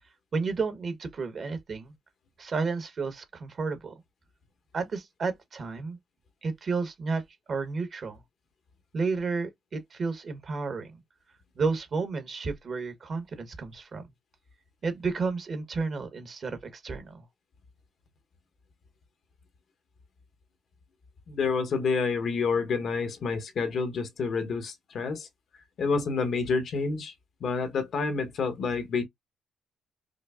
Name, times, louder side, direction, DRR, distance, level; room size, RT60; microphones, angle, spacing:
voice 1, 0.3-1.9 2.4-3.9 4.7-6.0 6.4-7.2 7.5-8.2 8.9-11.0 11.6-14.1 14.8-17.2, right 4 dB, 45° right, 1.1 m, -32 dB
voice 2, 21.3-25.3 25.8-27.1 27.4-29.0, left 4 dB, 60° left, 0.9 m, -28 dB
5.1 x 2.0 x 2.4 m
cardioid pair, 90°, 0 cm